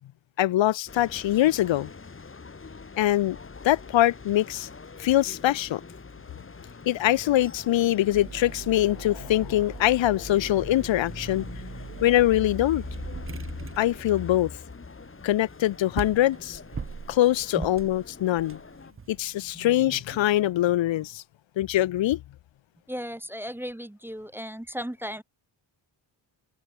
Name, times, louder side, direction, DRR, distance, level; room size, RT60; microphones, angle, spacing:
voice 1, 0.4-1.9 3.0-3.4 3.6-4.7 5.0-5.8 6.9-11.5 12.0-12.8 13.8-14.5 15.2-16.6 17.1-18.6 19.1-21.2 21.6-22.2, left 14 dB, 85° left, 0.8 m, -23 dB
sound 1, 0.9-18.9, left 4 dB, 30° left, 3.6 m, -43 dB
sound 2, 8.1-20.4, right 5 dB, 30° right, 1.2 m, -42 dB
voice 2, 22.9-25.2, equal, 5° right, 0.7 m, -35 dB
open air
wide cardioid pair, 155°, 44 cm